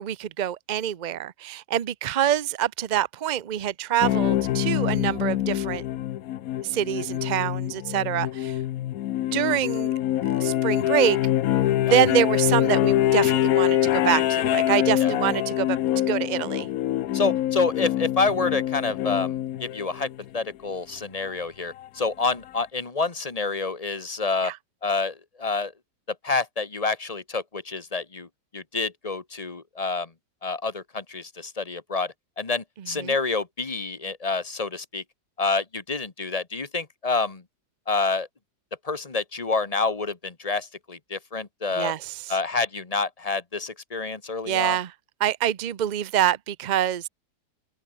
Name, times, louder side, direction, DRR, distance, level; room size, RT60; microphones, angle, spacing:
voice 1, 0.0-5.8 6.6-8.6 9.3-9.9 10.4-11.2 11.6-15.8 16.1-16.7 24.4-24.6 32.9-33.1 41.8-42.3 44.5-44.9 45.2-47.1, right 11 dB, 75° right, 0.4 m, -25 dB
sound 1, 4.0-20.3 21.8-21.9, left 13 dB, 70° left, 1.1 m, -25 dB
voice 2, 17.1-20.1 20.3-24.5 24.8-25.7 26.2-28.3 28.5-30.1 30.4-35.0 35.4-37.4 37.9-38.3 38.8-41.9 42.3-44.8, left 3 dB, 25° left, 1.2 m, -28 dB
omnidirectional pair, 1.7 m